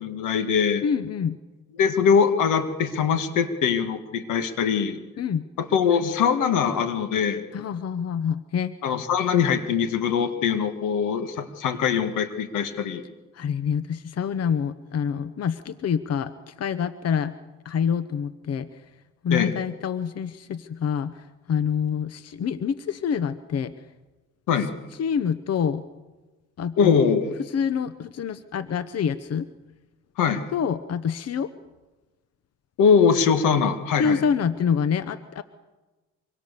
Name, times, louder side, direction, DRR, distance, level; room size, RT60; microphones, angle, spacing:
voice 1, 0.0-0.8 1.8-5.0 5.6-7.4 8.8-13.0 19.3-19.5 24.5-24.7 26.8-27.3 30.2-30.4 32.8-34.2, left 6 dB, 90° left, 8 dB, 2.0 m, -22 dB
voice 2, 0.8-1.4 5.2-5.5 7.5-8.7 13.3-17.4 17.6-18.7 19.2-23.7 25.0-25.8 26.6-27.0 27.5-29.5 30.5-31.5 34.0-35.4, left 7 dB, 55° left, 13 dB, 1.0 m, -26 dB
25.5 x 22.5 x 6.8 m, 1.2 s
cardioid pair, 90°, 30 cm